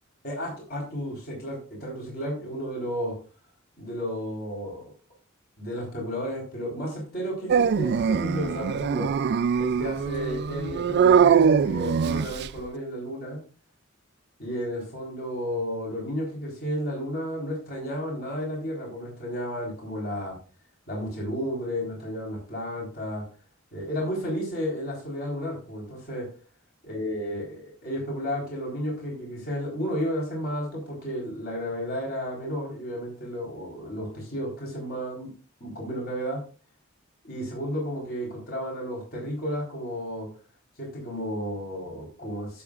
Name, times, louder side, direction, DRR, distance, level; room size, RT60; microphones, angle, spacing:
voice 1, 0.2-3.1 3.8-4.9 5.6-9.1 9.6-13.4 14.4-20.4 20.9-23.2 23.7-26.3 26.9-35.3 35.6-36.4 37.2-40.3 40.8-42.6, equal, 50° left, -2 dB, 4.1 m, -32 dB
Dog, 7.5-12.6, right 7 dB, 55° right, 0.3 m, -22 dB
15.5 x 7.1 x 2.4 m, 0.35 s
head